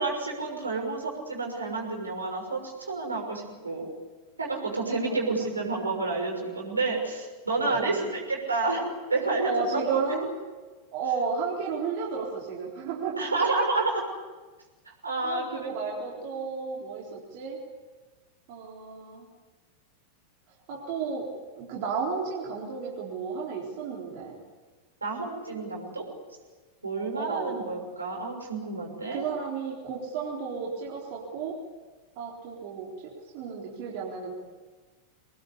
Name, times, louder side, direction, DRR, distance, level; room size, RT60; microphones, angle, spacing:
voice 1, 0.0-3.9 4.4-10.0 13.2-14.1 15.0-15.7 16.2-16.3 25.0-26.1 26.8-29.2, right 3 dB, 80° right, 1 dB, 6.1 m, -29 dB
voice 2, 4.9-5.5 7.6-8.1 9.4-10.3 10.9-13.2 15.2-17.6 18.5-19.3 20.7-21.3 21.6-24.3 27.1-27.7 29.1-31.6 32.2-34.3, right 5 dB, 45° right, -3 dB, 4.0 m, -33 dB
25.0 x 19.5 x 8.6 m, 1.3 s
figure-of-eight pair, 90°, 0 cm